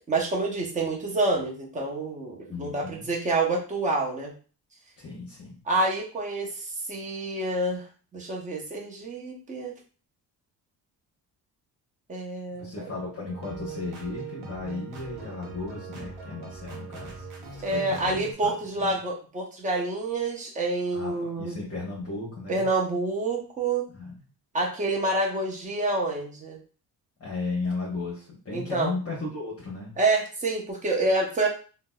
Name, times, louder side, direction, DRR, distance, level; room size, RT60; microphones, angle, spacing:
voice 1, 0.1-4.3 5.7-7.9 8.1-9.8 12.1-12.9 17.6-21.6 22.5-23.9 24.5-26.6 28.5-28.9 30.0-31.5, right 2 dB, 20° right, -1 dB, 0.8 m, -28 dB
voice 2, 2.5-3.1 5.0-5.6 12.6-17.3 17.7-18.9 20.9-22.6 23.9-24.1 27.2-29.9, left 3 dB, 40° left, -5 dB, 1.0 m, -35 dB
sound 1, 13.2-18.3, right 4 dB, 90° right, 1.0 m, -41 dB
3.8 x 2.2 x 2.3 m, 0.38 s
cardioid pair, 115°, 39 cm